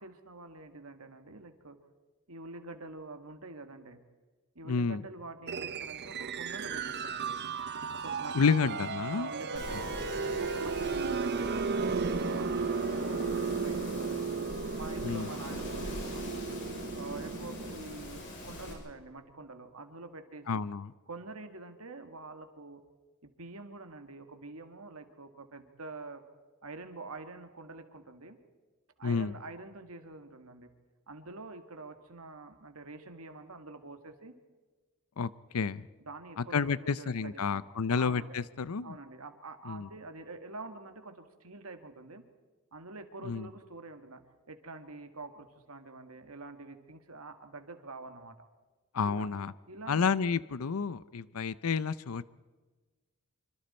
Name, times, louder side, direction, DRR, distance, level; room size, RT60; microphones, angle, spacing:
voice 1, 0.0-1.8 2.3-4.0 4.6-7.4 7.9-8.4 8.6-8.8 9.1-11.8 12.2-14.4 14.7-16.6 17.0-20.6 21.1-22.8 23.2-26.2 26.6-28.4 29.0-30.7 31.1-34.4 36.0-37.6 38.0-38.4 38.8-42.2 42.7-44.2 44.5-48.4 49.0-49.3 49.7-50.1, right 3 dB, 80° right, 7 dB, 2.1 m, -46 dB
voice 2, 4.7-5.0 8.3-9.3 15.0-15.3 20.5-20.9 29.0-29.3 35.2-35.8 36.4-39.0 39.7-39.9 43.2-43.5 48.9-49.5 49.9-52.2, left 5 dB, 80° left, 18 dB, 0.6 m, -30 dB
sound 1, 5.5-17.8, right 4 dB, 50° right, 0.8 m, -34 dB
Wind, 9.5-18.7, equal, 55° left, 6.4 m, -42 dB
26.0 x 25.5 x 4.4 m, 1.3 s
head